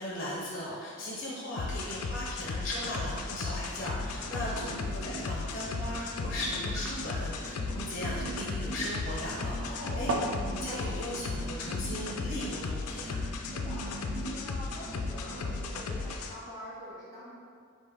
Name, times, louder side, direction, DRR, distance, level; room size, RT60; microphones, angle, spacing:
voice 1, 0.0-4.7 5.0-10.1 10.5-13.2, left 1 dB, 40° left, -5 dB, 0.6 m, -37 dB
sound 1, 1.6-16.3, left 3 dB, 90° left, 0.4 m, -36 dB
sound 2, 3.6-16.2, right 1 dB, 35° right, 1.4 m, -43 dB
sound 3, 3.9-10.4, right 1 dB, 80° right, 0.5 m, -40 dB
voice 2, 4.2-4.7 9.6-10.1 13.4-17.3, equal, 15° left, -8 dB, 1.1 m, -45 dB
5.0 x 2.6 x 3.5 m, 2.1 s
head